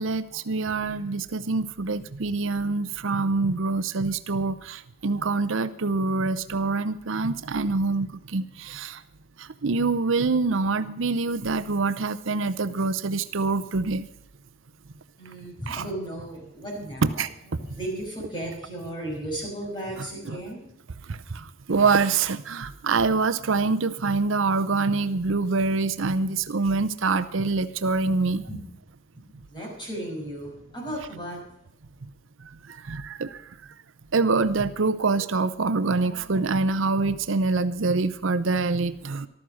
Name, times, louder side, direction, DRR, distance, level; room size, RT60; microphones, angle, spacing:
voice 1, 0.0-9.0 9.4-14.0 15.7-15.8 17.2-17.3 20.3-20.4 21.1-28.4 32.7-33.4 34.1-39.3, right 3 dB, 70° right, 12 dB, 0.7 m, -25 dB
voice 2, 15.2-20.7 22.6-22.7 28.5-28.6 29.1-29.2 29.5-31.4, right 1 dB, 20° left, -1 dB, 6.0 m, -35 dB
14.0 x 13.0 x 6.3 m, 0.72 s
head